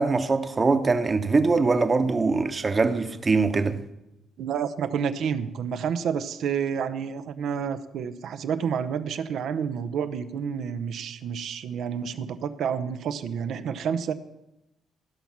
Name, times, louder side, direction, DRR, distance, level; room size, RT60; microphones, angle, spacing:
voice 1, 0.0-3.8, right 3 dB, 35° right, 1.1 m, -22 dB
voice 2, 4.4-14.1, right 7 dB, 70° right, 0.7 m, -29 dB
15.5 x 5.9 x 5.8 m
hypercardioid pair, 50°, 0 cm